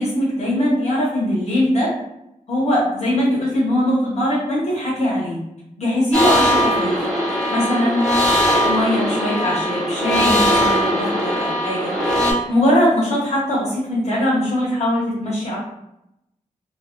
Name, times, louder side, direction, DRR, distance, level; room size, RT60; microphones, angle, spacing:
voice 1, 0.0-1.9 2.5-5.4 5.8-7.0 7.3-8.1 8.6-15.6, left 1 dB, 50° left, -7 dB, 0.9 m, -21 dB
sound 1, 6.1-12.3, equal, 5° left, 0.8 m, -20 dB
2.3 x 2.2 x 2.4 m, 0.83 s
wide cardioid pair, 90°, 14 cm